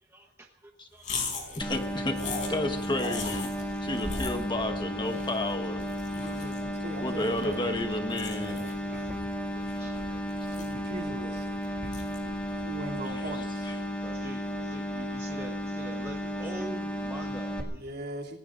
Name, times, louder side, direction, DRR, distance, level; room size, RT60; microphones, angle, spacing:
voice 1, 0.0-1.0 1.5-1.6 5.9-6.0 8.3-9.3 9.5-10.7 11.3-12.0 12.5-12.7 13.9-17.8, right 1 dB, 15° right, 2 dB, 1.0 m, -46 dB
sound 1, 1.0-13.5, left 3 dB, 40° left, 4.5 m, -40 dB
voice 2, 1.6-2.2 2.5-3.5 3.8-5.8 7.0-8.6 13.6-13.7, left 1 dB, 25° left, 5 dB, 1.3 m, -31 dB
sound 2, 1.6-17.6, equal, 5° left, 1.9 m, -34 dB
voice 3, 6.2-7.6 10.5-11.5 12.6-13.7 17.7-18.4, right 1 dB, 55° right, 0 dB, 2.8 m, -40 dB
26.0 x 17.5 x 2.6 m, 0.91 s
head